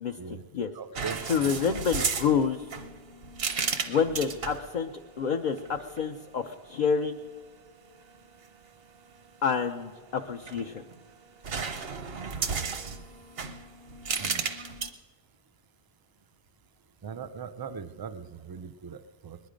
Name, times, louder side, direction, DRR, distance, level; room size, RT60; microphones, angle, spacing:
voice 1, 0.0-0.7 1.3-2.7 3.9-4.9 5.2-7.2 9.4-10.8, left 6 dB, 55° left, 3 dB, 0.6 m, -28 dB
voice 2, 0.7-1.7 14.2-14.5 17.0-19.4, right 6 dB, 40° right, 11 dB, 0.3 m, -40 dB
sound 1, 1.0-4.7 5.6-6.0 10.2-11.0 11.4-14.9, right 5 dB, 70° right, 1.1 m, -33 dB
21.0 x 10.5 x 5.0 m, 1.5 s
omnidirectional pair, 1.0 m